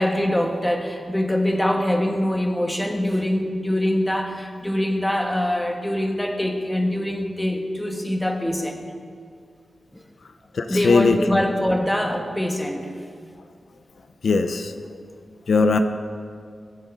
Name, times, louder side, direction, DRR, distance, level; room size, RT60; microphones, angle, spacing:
voice 1, 0.0-8.8 9.9-10.0 10.7-12.9, left 1 dB, 10° left, 3 dB, 1.4 m, -23 dB
voice 2, 10.5-11.4 14.2-14.7 15.5-15.8, left 4 dB, 70° left, 8 dB, 0.7 m, -19 dB
22.0 x 8.1 x 5.3 m, 2.3 s
wide cardioid pair, 120°, 0 cm